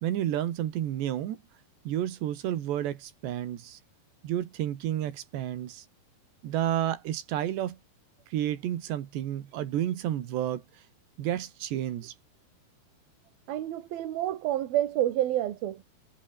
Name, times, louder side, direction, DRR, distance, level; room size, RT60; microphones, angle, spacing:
voice 1, 0.0-1.4 1.9-3.8 4.2-5.8 6.4-7.8 8.3-10.6 11.2-12.1, right 11 dB, 90° right, 4.1 m, -31 dB
voice 2, 13.5-15.8, right 13 dB, 65° right, 3.5 m, -28 dB
omnidirectional pair, 4.9 m